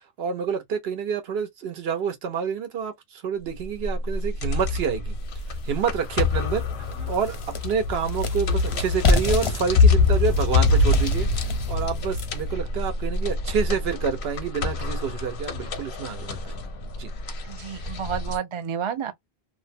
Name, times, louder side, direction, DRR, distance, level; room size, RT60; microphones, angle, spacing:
voice 1, 0.2-5.1 5.5-6.6 7.1-7.4 7.6-11.3 11.7-16.6 17.0-17.1, right 6 dB, 75° right, 0.9 m, -28 dB
sound 1, 3.6-18.4, left 3 dB, 85° left, 1.0 m, -25 dB
sound 2, 5.4-5.5 6.0-6.1 6.5-12.5, left 3 dB, 40° left, 0.5 m, -28 dB
voice 2, 17.4-19.1, right 8 dB, 45° right, 0.4 m, -30 dB
2.6 x 2.0 x 2.6 m
omnidirectional pair, 1.1 m